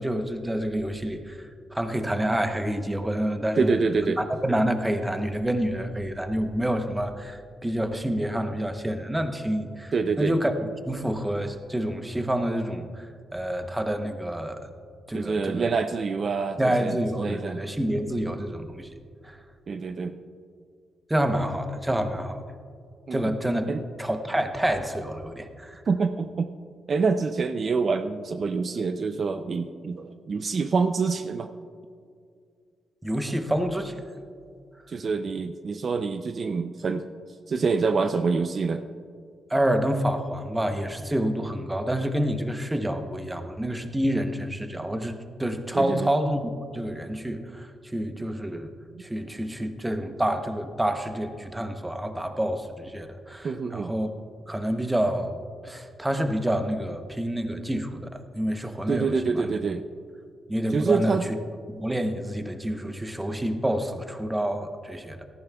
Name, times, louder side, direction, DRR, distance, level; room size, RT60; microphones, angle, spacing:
voice 1, 0.0-1.4 1.7-3.8 4.2-10.5 10.9-13.1 13.3-14.7 15.1-15.7 16.6-18.9 19.2-19.4 21.1-22.4 23.1-23.7 24.0-25.8 33.0-34.0 39.5-48.7 49.0-54.1 54.5-55.4 55.6-59.5 60.5-61.4 61.7-65.2, right 1 dB, 10° right, 7 dB, 0.8 m, -28 dB
voice 2, 3.6-4.2 9.9-10.4 15.1-17.6 19.7-20.2 23.1-23.3 23.7-23.8 25.9-26.5 26.9-31.5 34.9-37.1 37.5-38.8 45.7-46.1 53.4-53.9 58.9-59.8 60.7-61.2, right 4 dB, 45° right, 8 dB, 0.4 m, -26 dB
17.5 x 14.0 x 2.3 m, 2.3 s
cardioid pair, 120°, 0 cm